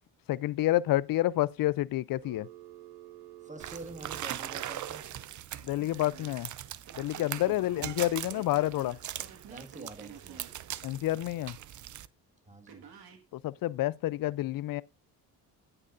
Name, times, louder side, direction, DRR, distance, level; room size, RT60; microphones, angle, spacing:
voice 1, 0.3-2.5 5.6-6.5 7.0-9.0 10.8-11.6 13.3-14.8, left 15 dB, 60° left, 0.5 m, -29 dB
Telephone, 2.2-5.0 5.7-6.3 6.9-10.6 12.7-13.2, right 9 dB, 70° right, 1.8 m, -50 dB
voice 2, 3.4-5.1 7.4-7.7 9.5-10.4 12.4-12.8, right 2 dB, 20° right, 1.8 m, -47 dB
sound 1, 3.6-12.1, right 12 dB, 50° right, 0.5 m, -41 dB
9.6 x 8.9 x 2.5 m
cardioid pair, 75°, 39 cm